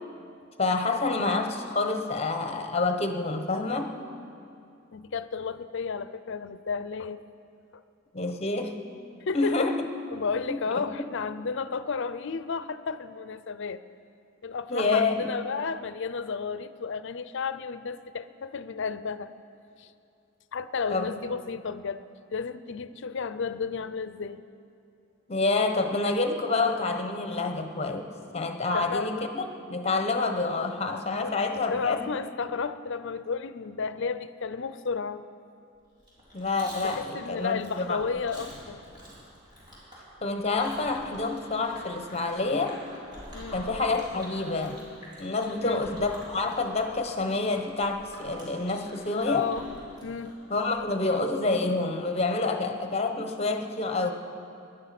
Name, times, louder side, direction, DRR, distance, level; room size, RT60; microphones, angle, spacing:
voice 1, 0.6-4.0 8.1-8.8 9.3-9.8 10.5-10.6 14.7-15.3 20.9-21.1 25.3-29.4 29.7-32.1 36.3-38.0 40.2-42.8 43.5-44.8 45.2-49.5 50.5-54.1, left 3 dB, 30° left, 6 dB, 1.1 m, -28 dB
voice 2, 4.9-7.2 7.7-7.8 9.3-9.7 10.1-13.8 14.4-19.3 19.8-19.9 20.5-22.0 22.3-24.4 28.7-29.3 31.2-35.2 36.8-38.8 43.3-43.7 45.6-45.8 49.2-49.7 50.0-50.4, left 5 dB, 65° left, 13 dB, 0.6 m, -32 dB
Chewing mastication, 36.0-50.8, equal, 25° right, 5.0 m, -47 dB
19.5 x 11.0 x 6.0 m, 2.5 s
head